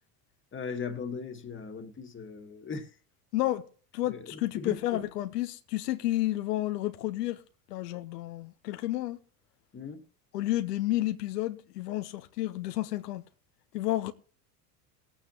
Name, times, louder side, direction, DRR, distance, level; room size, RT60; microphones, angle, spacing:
voice 1, 0.5-2.9 4.1-5.1 9.7-10.0, left 5 dB, 25° left, 1.9 m, -38 dB
voice 2, 3.3-3.7 3.9-7.4 7.7-9.2 10.3-13.2 13.7-14.1, left 15 dB, 85° left, 1.0 m, -31 dB
20.0 x 8.8 x 3.2 m
hypercardioid pair, 95°, 47 cm